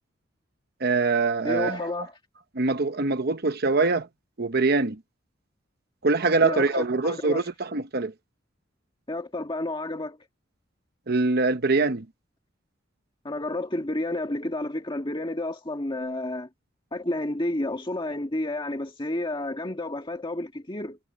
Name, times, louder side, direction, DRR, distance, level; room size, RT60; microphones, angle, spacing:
voice 1, 0.8-1.8 2.5-4.1 4.4-5.0 6.0-8.1 11.1-12.1, right 3 dB, 55° right, 1.0 m, -23 dB
voice 2, 1.4-2.2 6.4-7.5 9.1-10.2 13.2-16.5 16.9-21.0, left 1 dB, 25° left, 1.6 m, -31 dB
head